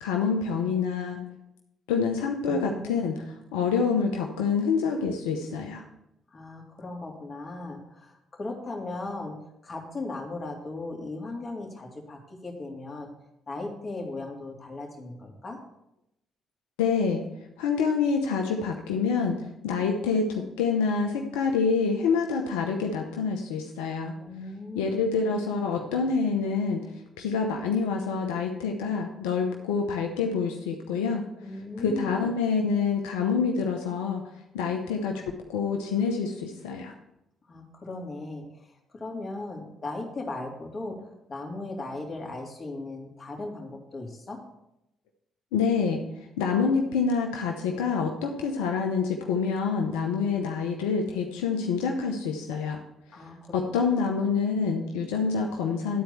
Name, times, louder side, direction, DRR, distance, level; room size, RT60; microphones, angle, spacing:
voice 1, 0.0-1.2 1.9-3.2 3.5-5.8 16.8-17.2 17.6-24.1 24.7-26.9 27.2-31.2 31.8-34.3 34.5-36.9 45.5-46.0 46.4-52.8 53.5-56.0, left 5 dB, 85° left, 2 dB, 0.8 m, -27 dB
voice 2, 2.4-3.0 6.3-9.3 9.6-13.1 13.5-15.6 24.2-25.1 25.7-26.1 31.4-32.3 37.5-44.4 53.1-53.6 53.9-54.1, left 2 dB, 40° left, 1 dB, 2.6 m, -37 dB
11.0 x 4.5 x 7.0 m, 0.85 s
hypercardioid pair, 55°, 0 cm